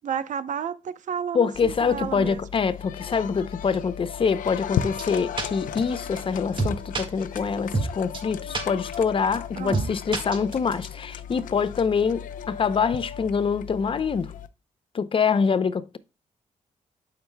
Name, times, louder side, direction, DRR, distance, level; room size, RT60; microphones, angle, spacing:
voice 1, 0.0-2.4 9.6-9.9, right 8 dB, 70° right, 0.7 m, -31 dB
voice 2, 1.3-14.3 14.9-16.0, left 6 dB, 40° left, 0.6 m, -25 dB
sound 1, 1.5-14.5, left 9 dB, 90° left, 0.6 m, -36 dB
sound 2, 2.9-10.8 11.0-11.6 11.9-13.7, left 7 dB, 70° left, 1.1 m, -43 dB
sound 3, 5.0-5.1 5.4-5.5 5.8-5.9 6.2-6.3 6.6-7.0 7.4-7.5 7.7-7.9 8.1-8.2 8.5-8.6 8.9-9.0 9.3-9.4 9.7-9.9 10.1-10.7, right 3 dB, 35° right, 1.7 m, -26 dB
11.0 x 5.9 x 2.2 m
cardioid pair, 105°, 13 cm